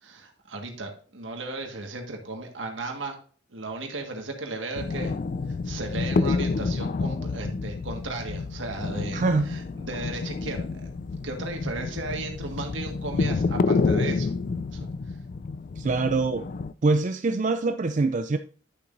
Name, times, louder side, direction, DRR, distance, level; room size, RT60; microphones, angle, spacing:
voice 1, 0.0-3.2 3.5-5.1 5.5-10.9 11.2-14.3 14.7-14.8 15.1-15.2, right 2 dB, 85° right, 1.7 m, -35 dB
sound 1, 4.7-16.7, left 4 dB, 45° left, 0.3 m, -29 dB
voice 2, 9.1-9.6 15.8-16.5 16.8-18.4, right 3 dB, 40° right, 0.4 m, -24 dB
11.0 x 6.9 x 2.6 m
head